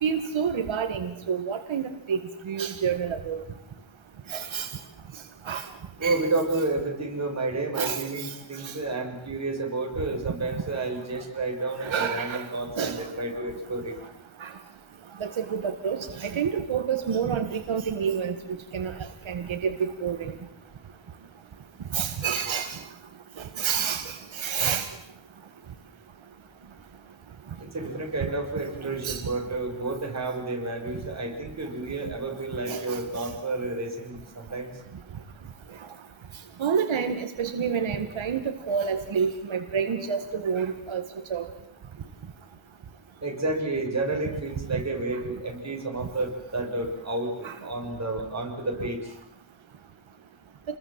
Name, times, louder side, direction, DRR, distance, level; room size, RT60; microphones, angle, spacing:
voice 1, 0.0-2.2 2.5-3.4 4.3-4.7 5.5-5.7 6.0-6.2 7.8-8.3 8.6-8.7 11.8-12.5 12.8-13.0 14.4-14.5 15.2-18.3 18.7-18.9 19.3-20.3 21.9-22.8 23.4-24.9 28.2-28.3 29.0-29.2 32.7-33.0 36.6-41.0 41.3-41.5 47.4-47.5, right 7 dB, 85° right, 7 dB, 2.1 m, -28 dB
voice 2, 6.0-13.9 27.6-34.7 43.2-49.1, right 2 dB, 35° right, 1 dB, 6.6 m, -30 dB
28.5 x 21.5 x 7.7 m, 0.81 s
wide cardioid pair, 150°, 46 cm